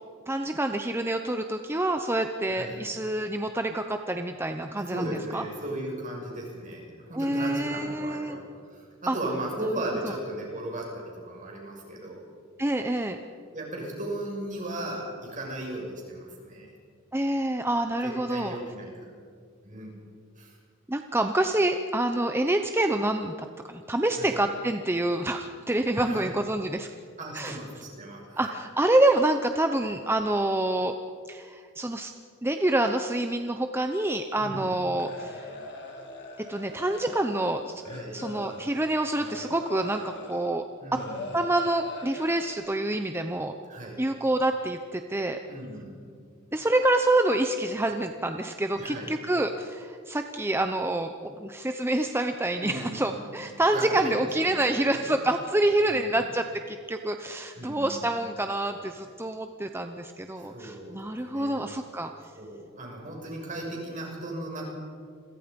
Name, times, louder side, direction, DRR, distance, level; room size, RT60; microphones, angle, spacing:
voice 1, 0.3-5.4 7.1-8.4 9.1-9.2 9.6-9.7 10.0-10.1 12.6-13.2 17.1-18.6 20.9-26.9 27.3-27.6 28.4-30.9 31.3-32.1 32.4-35.5 36.5-37.8 38.1-40.6 40.9-41.0 41.3-43.5 44.0-45.4 46.5-62.1, right 1 dB, 10° right, 6 dB, 0.8 m, -27 dB
voice 2, 2.5-2.8 4.7-12.2 13.5-16.7 18.0-18.9 19.6-20.0 20.4-20.5 24.2-24.4 26.0-26.3 27.2-28.5 34.4-34.7 37.8-38.2 40.8-41.2 43.7-44.0 45.5-46.0 48.7-49.1 52.5-53.2 53.6-55.1 55.9-56.2 57.6-58.0 60.4-61.6 62.0-64.6, right 1 dB, 35° right, -1 dB, 6.4 m, -36 dB
sound 1, 35.0-40.5 40.9-42.6, left 2 dB, 50° left, 3.9 m, -41 dB
29.0 x 22.5 x 5.3 m, 2.2 s
head